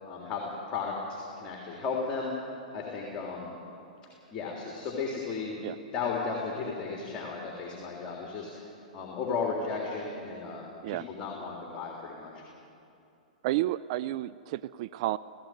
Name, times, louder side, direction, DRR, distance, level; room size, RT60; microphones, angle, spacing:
voice 1, 0.1-2.3 2.7-3.6 4.3-5.6 5.9-12.4, left 4 dB, 30° left, -1 dB, 3.5 m, -35 dB
voice 2, 13.4-15.2, right 15 dB, 50° right, 16 dB, 0.4 m, -31 dB
18.0 x 16.0 x 9.3 m, 2.7 s
hypercardioid pair, 110°, 4 cm